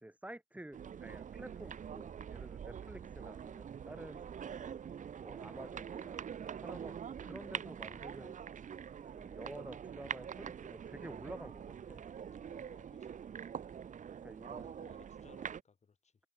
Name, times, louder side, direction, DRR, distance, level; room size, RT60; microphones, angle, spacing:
voice 1, 0.0-4.3 5.2-6.2 6.5-8.3 9.1-12.0 14.2-14.7, right 1 dB, 10° right, 1.3 m, -50 dB
sound 1, 0.7-15.6, right 8 dB, 50° right, 1.3 m, -45 dB
voice 2, 12.3-13.2 14.5-16.1, left 5 dB, 45° left, 6.5 m, -63 dB
hypercardioid pair, 40°, 16 cm